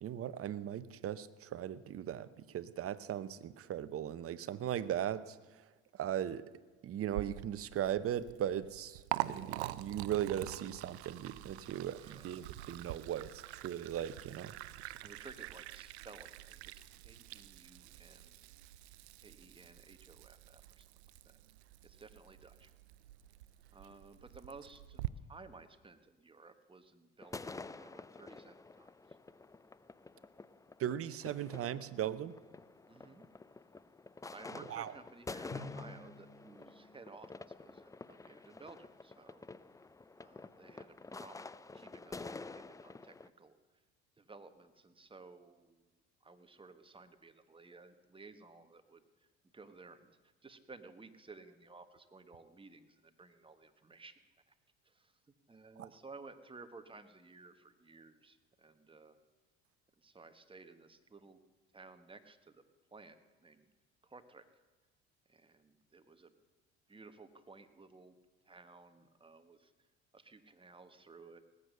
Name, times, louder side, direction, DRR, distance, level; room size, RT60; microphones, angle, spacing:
voice 1, 0.0-5.4 6.0-6.4 6.8-14.5 14.8-14.9 30.8-32.3 34.7-34.9 55.8-55.9, right 10 dB, 45° right, 15 dB, 0.8 m, -38 dB
Liquid, 7.1-25.1, right 15 dB, 85° right, 0.5 m, -46 dB
voice 2, 12.0-12.3 12.6-12.9 15.0-18.5 19.2-20.9 21.2-21.4 21.8-22.7 23.7-25.0 25.3-29.2 32.9-33.2 34.3-39.5 40.2-43.6 44.2-45.8 46.2-49.0 49.5-54.1 54.5-54.6 54.8-55.2 55.5-59.2 60.0-61.4 61.7-62.6 62.9-63.7 64.0-64.4 65.3-66.3 66.9-68.1 68.4-69.7 70.1-71.4, right 3 dB, 15° right, 9 dB, 1.3 m, -56 dB
sound 1, 27.2-43.3, left 3 dB, 10° left, 0.4 m, -49 dB
Drum, 35.5-37.7, left 2 dB, 40° left, 3.9 m, -50 dB
19.0 x 8.3 x 6.7 m, 1.3 s
hypercardioid pair, 70°, 32 cm